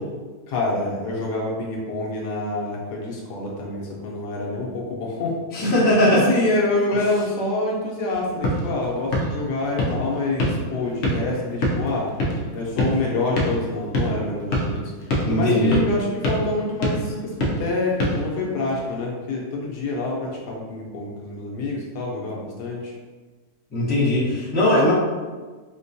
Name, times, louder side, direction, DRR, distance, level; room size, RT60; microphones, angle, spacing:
voice 1, 0.5-5.4 6.1-12.1 12.5-14.9 15.3-22.9, left 2 dB, 75° left, -3 dB, 1.2 m, -26 dB
voice 2, 5.5-6.3 15.2-15.8 23.7-24.9, left 1 dB, 10° left, -9 dB, 0.7 m, -19 dB
sound 1, 8.1-18.9, equal, 60° left, 0.9 m, -27 dB
4.4 x 2.2 x 2.6 m, 1.4 s
omnidirectional pair, 1.8 m